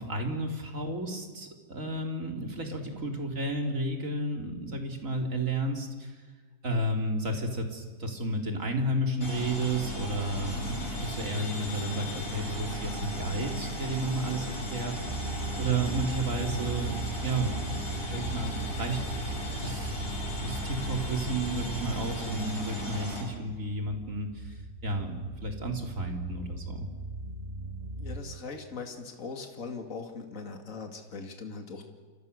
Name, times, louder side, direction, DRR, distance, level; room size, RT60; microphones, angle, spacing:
voice 1, 0.0-6.2 6.6-16.9 17.2-19.2 19.6-20.1 20.4-26.9, right 2 dB, 45° right, 3 dB, 3.5 m, -32 dB
sound 1, 9.2-23.2, left 1 dB, 30° left, 6.2 m, -35 dB
sound 2, 15.0-28.2, right 2 dB, 20° right, 1.6 m, -40 dB
voice 2, 28.0-31.8, left 4 dB, 45° left, 4 dB, 2.8 m, -40 dB
29.0 x 26.0 x 6.7 m, 1.5 s
omnidirectional pair, 2.0 m